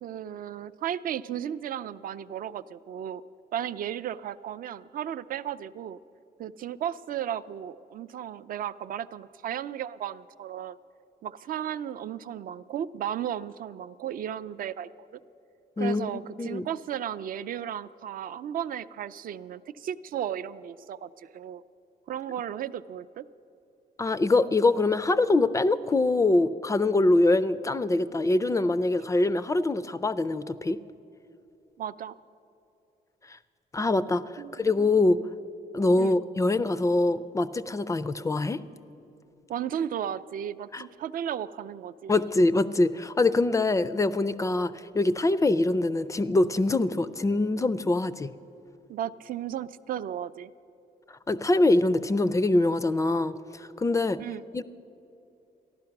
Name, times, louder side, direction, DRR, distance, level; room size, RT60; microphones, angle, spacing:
voice 1, 0.0-3.2 3.5-6.0 6.4-10.8 11.2-15.2 15.8-21.6 22.1-23.3 31.8-32.2 34.4-34.9 36.0-36.2 39.5-42.2 48.9-50.5 54.2-54.4, right 10 dB, 55° right, 15 dB, 0.4 m, -35 dB
voice 2, 15.8-16.7 24.0-30.8 33.7-35.2 35.7-38.6 40.7-40.8 42.1-48.3 51.3-53.3 53.6-54.2 54.5-54.6, left 2 dB, 20° left, 15 dB, 0.3 m, -24 dB
14.5 x 11.5 x 5.9 m, 2.8 s
cardioid pair, 120°, 17 cm